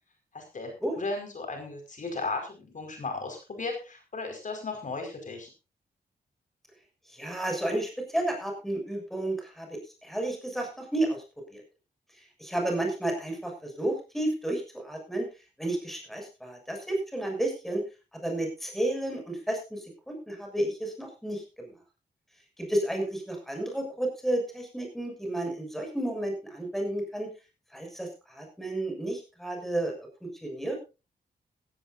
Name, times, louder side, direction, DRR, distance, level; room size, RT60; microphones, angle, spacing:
voice 1, 0.3-5.5, left 3 dB, 50° left, 4 dB, 5.0 m, -35 dB
voice 2, 7.1-11.2 11.5-11.6 12.4-15.3 15.6-17.8 18.2-21.7 22.6-27.3 27.7-30.8, right 1 dB, ahead, 3 dB, 6.8 m, -32 dB
17.0 x 16.0 x 2.6 m, 0.30 s
wide cardioid pair, 115°, 17 cm